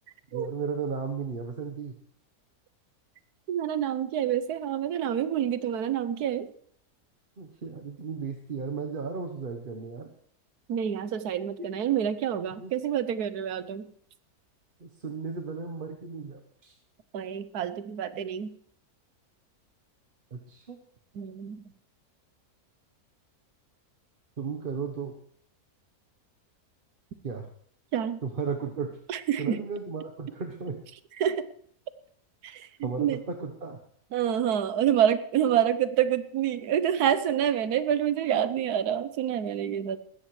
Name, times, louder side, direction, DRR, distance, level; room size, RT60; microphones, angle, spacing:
voice 1, 0.3-1.9 7.4-10.1 12.6-12.7 14.8-16.7 20.3-20.8 24.4-25.1 27.2-27.5 28.2-28.9 29.4-30.8 32.8-33.8, right 5 dB, 40° right, 3 dB, 1.1 m, -35 dB
voice 2, 3.5-6.5 10.7-13.9 17.1-18.5 21.1-21.6 27.9-28.2 29.1-29.6 31.2-31.5 32.4-33.2 34.1-40.0, right 9 dB, 85° right, 13 dB, 1.4 m, -27 dB
20.0 x 15.0 x 3.2 m, 0.62 s
omnidirectional pair, 1.6 m